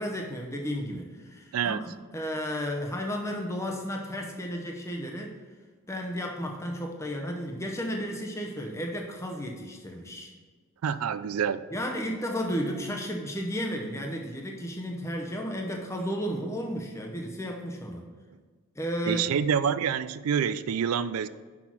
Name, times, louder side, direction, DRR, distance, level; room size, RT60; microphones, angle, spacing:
voice 1, 0.0-1.8 2.1-5.4 5.9-10.3 11.7-18.1 18.8-19.2, equal, 15° left, 1 dB, 0.7 m, -33 dB
voice 2, 1.5-1.8 10.8-11.6 19.1-21.3, right 7 dB, 80° right, 15 dB, 0.4 m, -27 dB
6.1 x 5.7 x 6.0 m, 1.5 s
head